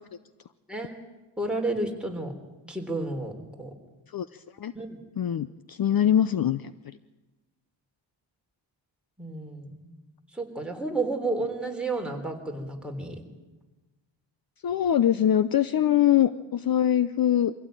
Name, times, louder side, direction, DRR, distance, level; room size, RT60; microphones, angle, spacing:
voice 1, 1.4-2.3 2.7-3.3 3.6-3.7 4.7-5.0 5.9-6.0 9.2-9.9 10.3-13.2, right 2 dB, ahead, 1 dB, 3.5 m, -31 dB
voice 2, 4.1-4.7 5.2-6.7 14.6-17.5, left 10 dB, 50° left, 14 dB, 0.6 m, -23 dB
24.0 x 16.0 x 9.0 m, 1.1 s
wide cardioid pair, 115°, 46 cm